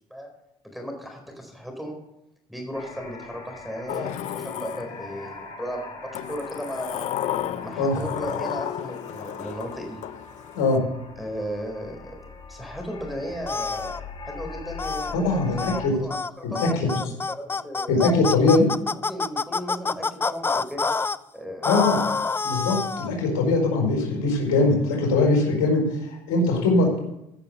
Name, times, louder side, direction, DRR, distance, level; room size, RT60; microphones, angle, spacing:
voice 1, 0.7-2.0 2.5-7.1 7.6-10.0 11.2-12.2 12.5-18.0 18.9-20.9 21.3-21.7, equal, ahead, 3 dB, 4.4 m, -35 dB
sound 1, 2.7-15.9, left 4 dB, 35° left, 3.4 m, -42 dB
Sliding door, 3.9-5.4 6.1-10.8, left 11 dB, 60° left, 0.8 m, -33 dB
sound 2, 13.5-14.0 14.8-15.2 15.6-15.8 16.1-16.3 16.6-21.2 21.6-23.1, left 4 dB, 15° left, 0.4 m, -27 dB
voice 2, 15.1-15.9 16.4-16.9 17.9-18.6 21.6-22.0 22.4-27.0, left 3 dB, 80° left, 0 dB, 4.8 m, -21 dB
15.0 x 6.9 x 6.8 m, 0.85 s
supercardioid pair, 80°, 14 cm